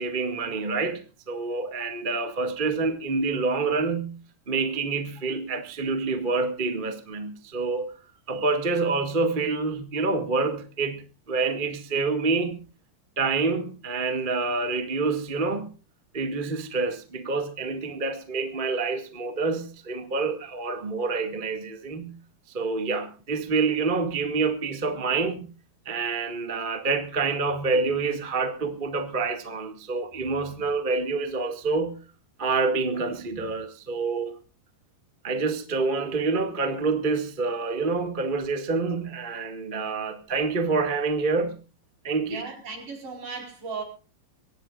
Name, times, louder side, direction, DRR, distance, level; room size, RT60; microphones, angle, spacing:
voice 1, 0.0-4.2 4.5-7.9 8.3-11.0 11.3-12.6 13.2-15.7 16.1-22.1 22.5-25.4 25.8-32.0 32.4-34.3 35.2-41.5 42.0-42.5, right 4 dB, 20° right, 1.5 m, -27 dB
voice 2, 42.3-43.8, right 4 dB, 65° right, 6.3 m, -36 dB
24.5 x 17.5 x 2.5 m
omnidirectional pair, 3.9 m